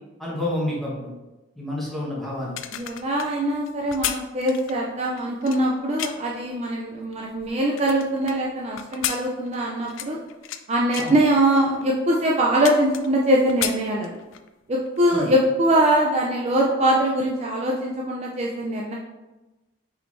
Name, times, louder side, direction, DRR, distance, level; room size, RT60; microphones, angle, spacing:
voice 1, 0.2-1.1 1.6-2.6 11.0-11.1 15.1-15.3, left 1 dB, ahead, -6 dB, 1.1 m, -29 dB
sound 1, 2.4-6.4 6.9-8.4 8.8-10.6 10.9-11.2 11.8-11.9 12.2-13.2 13.5-14.5 14.9-15.0, left 11 dB, 70° left, 0.3 m, -32 dB
voice 2, 2.7-10.2 10.7-14.1 14.7-18.9, right 1 dB, 30° right, -2 dB, 0.4 m, -22 dB
5.4 x 3.7 x 2.6 m, 1.1 s
head